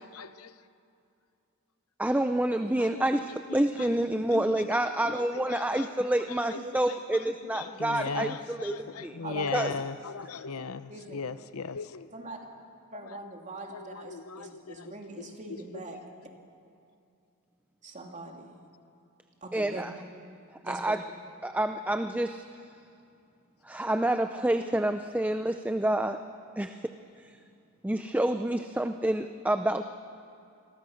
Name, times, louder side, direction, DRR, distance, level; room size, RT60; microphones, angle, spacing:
voice 1, 0.2-0.5 2.9-3.0 4.3-4.4 5.5-5.6 7.8-8.3 8.7-12.1 13.7-13.8 14.1-14.5, left 5 dB, 75° left, 13 dB, 0.8 m, -36 dB
voice 2, 2.0-9.2 9.5-9.7 19.5-19.9 20.6-21.0 21.4-22.4 23.6-26.2 26.6-27.3 27.8-29.8, right 1 dB, 5° right, 8 dB, 0.5 m, -28 dB
voice 3, 9.2-9.7 10.9-11.2 12.1-12.4 12.9-16.0 17.8-18.5 19.4-19.8 20.6-21.0, right 2 dB, 35° right, 1 dB, 2.7 m, -42 dB
28.0 x 21.5 x 6.4 m, 2.5 s
head